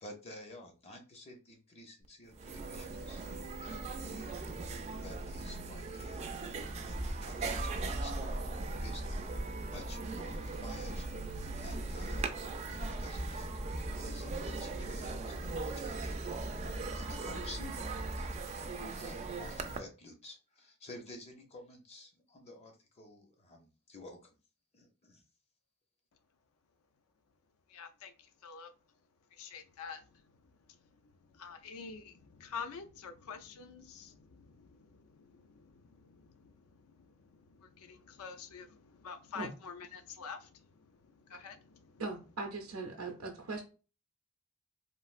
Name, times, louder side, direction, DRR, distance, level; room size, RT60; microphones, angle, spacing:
voice 1, 0.0-3.2 3.6-11.1 11.5-13.5 14.0-16.2 16.5-16.6 16.9-17.8 18.2-18.5 18.9-24.4 24.7-25.2, left 2 dB, 30° left, 0.6 m, -52 dB
sound 1, 2.0-2.1 2.3-19.8, right 4 dB, 30° right, 0.3 m, -40 dB
sound 2, 6.8-18.3, equal, 65° left, 1.0 m, -41 dB
voice 2, 27.7-28.7 29.3-42.0, left 6 dB, 80° left, 0.4 m, -48 dB
voice 3, 42.0-43.6, right 3 dB, 75° right, 0.6 m, -39 dB
3.2 x 2.5 x 2.4 m
head